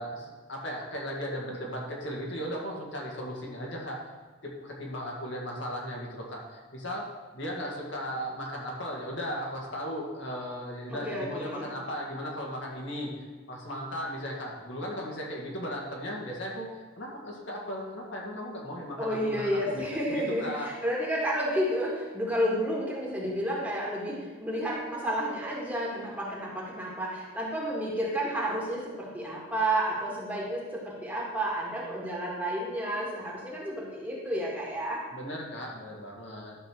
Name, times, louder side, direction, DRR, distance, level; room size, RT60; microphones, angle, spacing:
voice 1, 0.0-4.0 4.4-7.1 7.3-13.1 13.5-19.6 20.1-20.7 35.1-36.6, equal, 60° left, -2 dB, 1.9 m, -36 dB
voice 2, 10.9-11.7 19.0-35.0, equal, 10° right, -5 dB, 1.9 m, -31 dB
12.0 x 4.2 x 6.2 m, 1.4 s
head